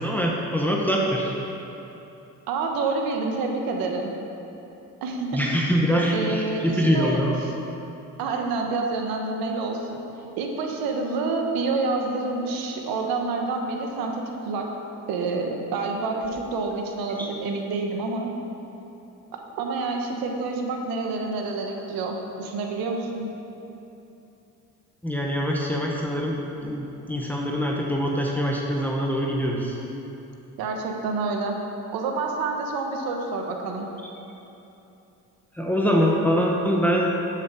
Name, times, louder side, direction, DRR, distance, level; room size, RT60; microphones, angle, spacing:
voice 1, 0.0-1.3 5.3-7.4 25.0-26.4 26.6-29.8 35.5-37.1, equal, 5° left, -2 dB, 1.1 m, -24 dB
voice 2, 2.5-4.1 5.0-5.4 6.1-7.2 8.2-10.0 10.4-14.7 15.1-18.3 19.3-23.3 30.6-31.6 31.9-33.9, right 3 dB, 90° right, 2 dB, 1.4 m, -28 dB
12.5 x 7.4 x 5.1 m, 2.9 s
cardioid pair, 100°, 35 cm